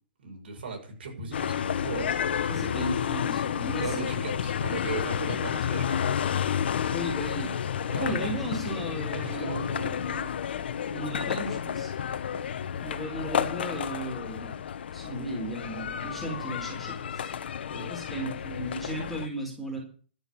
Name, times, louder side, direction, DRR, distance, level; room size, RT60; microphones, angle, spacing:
voice 1, 0.2-2.9 3.8-6.1 7.8-8.6 9.1-9.9 17.7-17.9, right 5 dB, 70° right, 2 dB, 6.4 m, -38 dB
sound 1, 1.3-19.3, left 8 dB, 75° left, 1.2 m, -31 dB
voice 2, 2.5-4.1 6.9-7.6 7.9-10.4 10.9-11.9 12.8-14.6 14.9-17.3 17.8-19.8, right 1 dB, ahead, -2 dB, 4.1 m, -35 dB
12.5 x 7.1 x 8.7 m, 0.41 s
hypercardioid pair, 160°, 6 cm